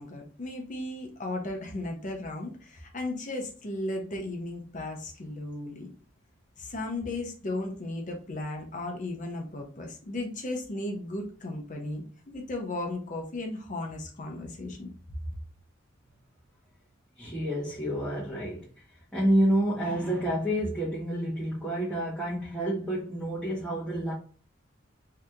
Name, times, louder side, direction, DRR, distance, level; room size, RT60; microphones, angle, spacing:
voice 1, 0.0-5.9 6.6-14.9, left 2 dB, 40° left, 1 dB, 0.6 m, -35 dB
voice 2, 17.2-18.8 19.1-24.1, right 1 dB, 5° left, -9 dB, 0.9 m, -28 dB
2.7 x 2.5 x 3.4 m, 0.40 s
head